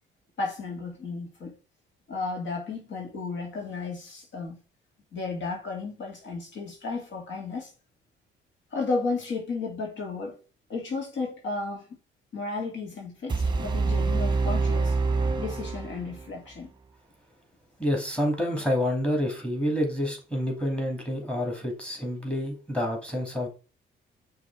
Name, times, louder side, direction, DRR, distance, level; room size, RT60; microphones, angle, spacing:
voice 1, 0.4-1.5 2.1-4.6 5.1-7.7 8.7-10.4 10.7-11.9 12.3-14.9 15.4-16.7, left 3 dB, 70° left, 2.2 m, -33 dB
sound 1, 13.3-16.3, right 4 dB, 20° right, 1.0 m, -26 dB
voice 2, 17.8-23.5, equal, 5° left, 2.6 m, -28 dB
6.2 x 3.5 x 4.7 m
cardioid pair, 90°, 20 cm